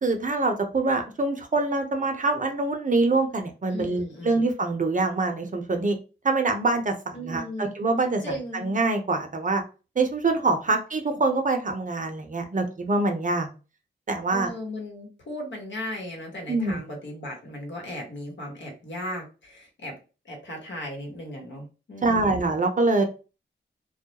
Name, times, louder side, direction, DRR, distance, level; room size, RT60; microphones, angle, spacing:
voice 1, 0.0-6.0 6.2-9.6 10.0-13.5 14.1-14.5 16.5-16.8 22.0-23.0, right 3 dB, 40° right, 5 dB, 0.7 m, -25 dB
voice 2, 3.7-4.4 7.1-7.7 8.2-8.7 14.3-20.0 20.2-22.4, left 1 dB, 65° left, 1 dB, 1.1 m, -36 dB
2.2 x 2.1 x 2.9 m, 0.32 s
cardioid pair, 45°, 20 cm